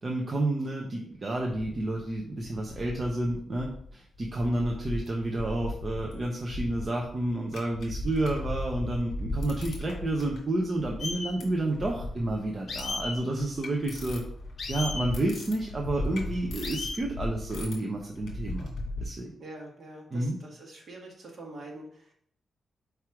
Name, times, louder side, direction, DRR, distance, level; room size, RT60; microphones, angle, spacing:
voice 1, 0.0-14.2 14.7-18.7 19.0-19.3 20.1-20.4, right 1 dB, 25° right, -1 dB, 0.7 m, -30 dB
sound 1, 1.3-2.2 2.4-3.9 4.1-19.1, left 2 dB, 70° left, 1.9 m, -38 dB
sound 2, 11.0-11.3 12.7-13.1 14.6-15.1 16.6-17.0, left 3 dB, 45° left, 0.8 m, -34 dB
voice 2, 19.4-22.1, right 2 dB, 45° right, -2 dB, 1.7 m, -45 dB
4.7 x 4.6 x 4.8 m, 0.64 s
wide cardioid pair, 175°, 0 cm